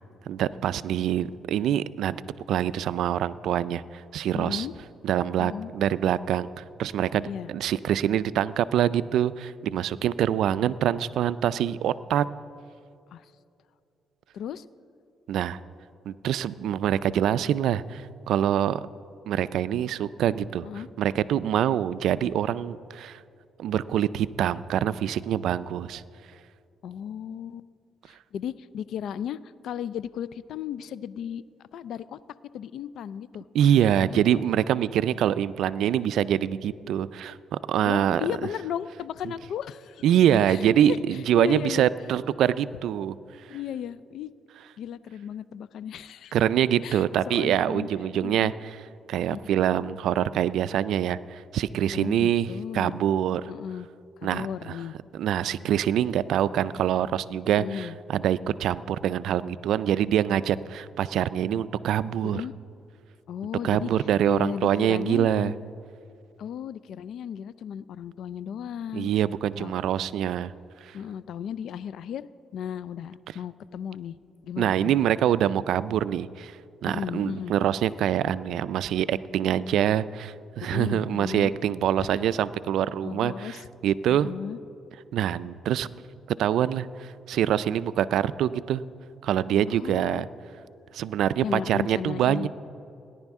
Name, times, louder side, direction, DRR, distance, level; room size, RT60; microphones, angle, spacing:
voice 1, 0.3-2.2 2.5-4.7 5.0-12.2 15.3-15.6 16.1-18.8 19.3-20.7 21.0-23.2 23.6-26.0 33.5-38.2 40.0-43.2 46.3-48.5 49.1-52.5 52.7-53.5 54.2-54.5 55.1-62.4 63.6-65.5 68.9-70.5 70.9-71.0 74.6-76.6 76.8-83.6 83.8-84.3 85.1-85.9 86.4-88.8 89.2-90.3 90.9-92.5, right 10 dB, 80° right, 16 dB, 0.3 m, -25 dB
voice 2, 4.3-4.7 5.4-5.7 7.2-7.5 13.1-13.3 14.3-14.6 20.6-20.9 26.8-27.7 28.1-31.4 31.7-32.2 32.5-33.5 34.0-34.4 37.8-40.0 40.5-41.9 43.5-44.3 44.8-46.4 46.8-47.9 48.2-48.5 49.2-49.5 51.9-53.0 53.5-53.9 54.2-55.0 57.5-58.0 62.2-62.5 63.3-63.9 64.3-65.5 66.4-69.1 69.6-69.8 70.9-72.3 72.5-74.2 74.4-74.9 76.8-77.5 80.7-81.5 82.0-82.2 83.0-83.7 84.1-84.6 89.7-90.3 91.4-92.5, left 9 dB, 75° left, 17 dB, 0.3 m, -35 dB
18.5 x 10.5 x 3.6 m, 2.6 s
cardioid pair, 90°, 0 cm